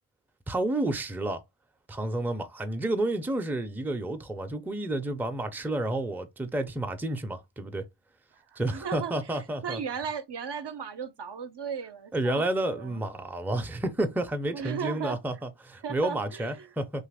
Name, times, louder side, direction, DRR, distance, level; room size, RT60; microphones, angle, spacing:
voice 1, 0.5-1.4 1.9-7.8 8.6-9.8 12.1-17.1, right 1 dB, 5° right, 0.4 m, -30 dB
voice 2, 8.3-9.1 9.6-13.1 14.5-15.2 15.8-16.7, right 7 dB, 60° right, 0.5 m, -36 dB
2.8 x 2.4 x 3.3 m
wide cardioid pair, 45°, 47 cm